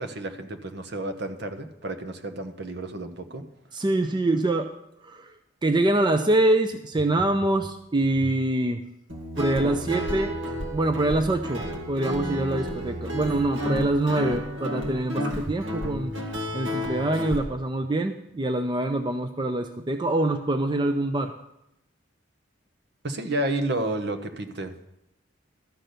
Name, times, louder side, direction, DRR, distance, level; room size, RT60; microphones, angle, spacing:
voice 1, 0.0-3.4 23.0-24.9, right 1 dB, 60° right, 7 dB, 1.0 m, -31 dB
voice 2, 3.7-4.7 5.0-5.3 5.6-8.8 9.4-10.3 10.7-16.1 16.5-21.3, right 2 dB, 25° right, 7 dB, 0.5 m, -25 dB
Guitar, 9.1-17.4, left 1 dB, 80° right, 2.1 m, -31 dB
13.0 x 6.0 x 6.7 m, 0.82 s
head